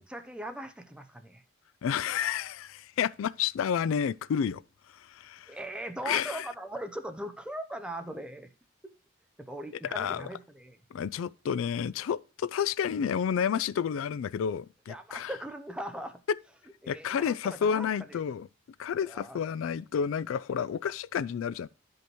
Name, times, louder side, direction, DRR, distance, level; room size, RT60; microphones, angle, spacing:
voice 1, 0.0-1.4 5.5-8.5 9.4-10.8 14.9-16.2 16.8-18.2 19.1-19.4, right 1 dB, 5° right, 0.7 m, -40 dB
voice 2, 1.8-4.6 4.9-5.6 6.1-6.5 9.9-10.3 10.9-15.3 16.9-18.5 18.8-21.7, left 7 dB, 75° left, 0.3 m, -30 dB
11.5 x 5.3 x 3.0 m
head